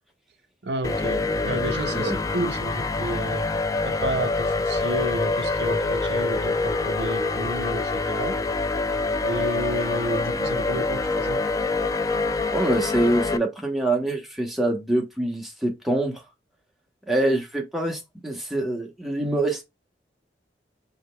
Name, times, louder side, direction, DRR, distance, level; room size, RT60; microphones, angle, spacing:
voice 1, 0.6-3.5 3.8-8.4 9.2-11.4, right 1 dB, 75° right, 0.8 m, -31 dB
sound 1, 0.8-13.4, left 3 dB, 20° left, 0.3 m, -25 dB
voice 2, 12.5-16.2 17.1-19.6, right 1 dB, ahead, 1.1 m, -25 dB
5.1 x 3.6 x 2.2 m
head